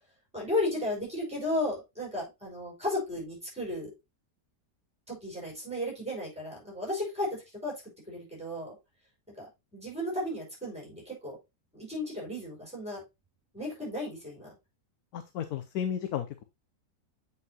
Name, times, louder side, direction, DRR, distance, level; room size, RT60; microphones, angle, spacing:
voice 1, 0.3-3.9 5.1-7.7 8.1-8.7 9.4-11.4 11.7-13.0 13.5-14.5, left 1 dB, 5° right, -4 dB, 4.9 m, -34 dB
voice 2, 15.1-16.4, left 9 dB, 70° left, 10 dB, 1.1 m, -33 dB
8.0 x 5.6 x 2.8 m, 0.23 s
omnidirectional pair, 1.8 m